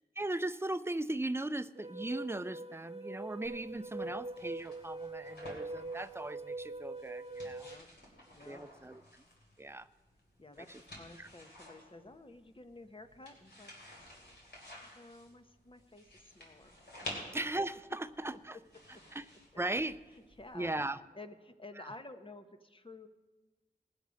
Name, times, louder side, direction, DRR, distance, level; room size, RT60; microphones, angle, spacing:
voice 1, 0.2-7.7 8.4-9.0 9.6-9.9 10.7-10.8 11.2-11.3 17.3-18.6 19.1-19.2 19.6-20.0 20.5-21.0, right 2 dB, 15° right, 13 dB, 0.4 m, -38 dB
sound 1, 1.8-7.7, right 2 dB, 35° right, 0.9 m, -43 dB
sound 2, 3.4-20.7, left 1 dB, 85° left, 3.2 m, -52 dB
voice 2, 7.4-7.9 8.3-8.6 10.4-13.7 14.9-17.2 18.3-18.4 20.4-20.7 21.1-23.1, left 2 dB, 30° left, 7 dB, 0.9 m, -52 dB
19.5 x 7.1 x 5.2 m, 1.2 s
wide cardioid pair, 55°, 17 cm